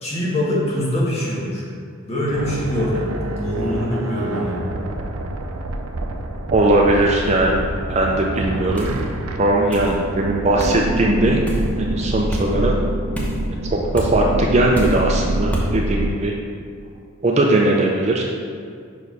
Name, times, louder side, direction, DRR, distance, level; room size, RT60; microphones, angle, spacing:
voice 1, 0.0-1.6 2.0-3.1 3.4-4.6, left 1 dB, 30° left, -6 dB, 1.3 m, -23 dB
sound 1, 2.3-16.1, right 1 dB, 85° right, 0.5 m, -26 dB
voice 2, 6.5-7.6 7.9-8.9 9.4-11.4 11.7-12.7 13.6-16.3 17.2-18.2, right 1 dB, 30° right, 0 dB, 0.4 m, -19 dB
sound 2, 8.8-9.0 9.7-9.9 10.6-10.8 11.5-11.7 12.3-12.5 13.1-13.4 13.9-14.1 14.7-15.0 15.5-15.7, equal, 5° left, 0.7 m, -28 dB
5.4 x 4.7 x 4.7 m, 2.2 s
head